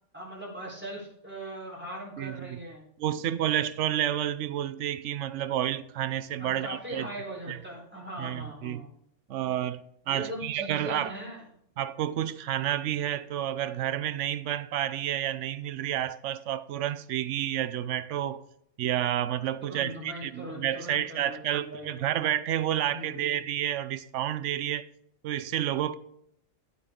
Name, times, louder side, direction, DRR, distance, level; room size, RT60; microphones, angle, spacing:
voice 1, 0.1-2.8 6.4-8.9 10.1-11.4 19.6-22.1 22.8-23.2, equal, 10° right, 4.2 m, -40 dB
voice 2, 2.2-2.6 3.0-7.1 7.5-7.6 8.2-8.8 9.3-11.1 11.8-18.4 18.8-24.9 25.2-26.0, right 11 dB, 75° right, 0.9 m, -30 dB
11.5 x 8.4 x 3.8 m
omnidirectional pair, 1.3 m